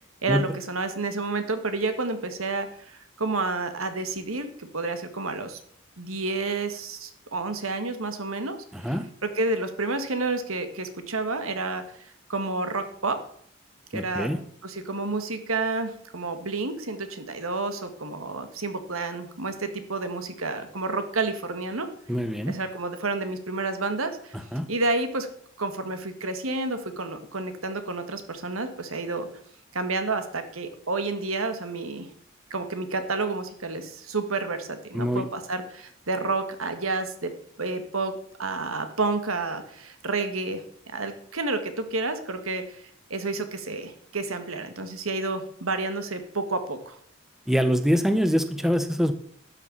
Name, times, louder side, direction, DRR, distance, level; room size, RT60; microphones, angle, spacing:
voice 1, 0.2-5.6 6.0-13.2 13.9-14.3 14.6-21.9 22.5-24.4 24.7-25.3 25.6-29.3 29.7-32.1 32.5-37.3 37.6-38.1 38.4-40.6 40.9-42.8 43.1-47.0, right 3 dB, 85° right, 8 dB, 1.7 m, -30 dB
voice 2, 8.7-9.1 13.9-14.4 22.1-22.6 24.5-24.7 34.9-35.3 47.5-49.1, equal, ahead, 9 dB, 0.7 m, -24 dB
12.0 x 6.8 x 7.3 m, 0.63 s
head